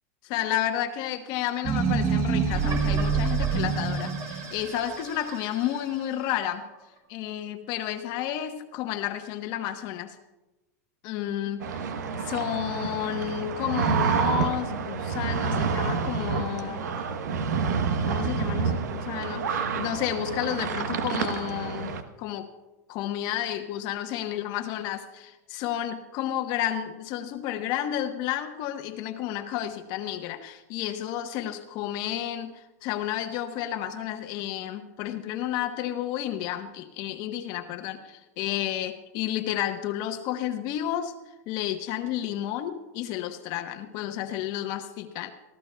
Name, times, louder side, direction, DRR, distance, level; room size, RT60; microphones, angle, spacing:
voice 1, 0.2-6.6 7.1-10.1 11.0-11.8 12.2-16.9 18.0-22.5 22.9-41.1 41.5-45.3, left 11 dB, 50° left, 7 dB, 1.0 m, -31 dB
sound 1, 1.6-6.0, right 5 dB, 35° right, 5.2 m, -27 dB
sound 2, 11.6-22.0, right 5 dB, 90° right, 1.0 m, -28 dB
24.5 x 14.5 x 2.3 m, 1.1 s
supercardioid pair, 130°, 9 cm